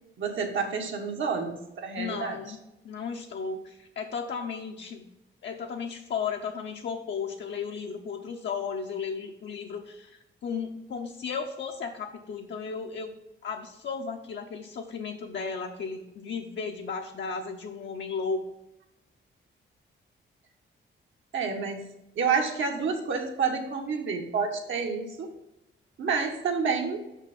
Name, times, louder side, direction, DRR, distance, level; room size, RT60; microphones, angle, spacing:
voice 1, 0.2-2.4 21.3-21.9 22.2-25.3 26.0-27.0, right 5 dB, 70° right, 2 dB, 1.4 m, -29 dB
voice 2, 2.0-2.6 2.8-5.1 5.4-13.2 13.4-18.4, left 5 dB, 65° left, 2 dB, 0.7 m, -34 dB
6.0 x 5.8 x 5.9 m, 0.90 s
wide cardioid pair, 145°, 20 cm